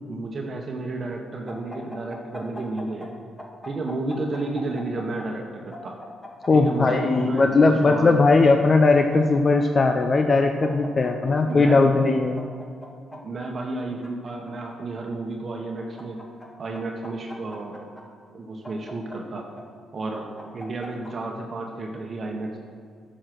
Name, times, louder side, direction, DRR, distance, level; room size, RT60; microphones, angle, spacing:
voice 1, 0.1-3.1 3.6-6.0 6.5-8.1 11.4-11.9 13.1-16.2 16.6-17.7 18.3-19.5 19.9-20.3 20.5-22.6, right 2 dB, 40° right, 1 dB, 1.1 m, -32 dB
sound 1, 1.5-3.1 3.4-5.3 5.7-7.9 8.7-9.9 10.1-10.2 10.6-11.6 12.1-13.2 13.8-14.8 15.5-16.5 16.7-18.0 18.6-19.6 20.1-21.1, left 1 dB, 15° left, 1.6 m, -40 dB
voice 2, 6.5-12.4, left 3 dB, 35° left, 5 dB, 0.5 m, -19 dB
9.5 x 6.4 x 6.1 m, 2.2 s
cardioid pair, 90°, 0 cm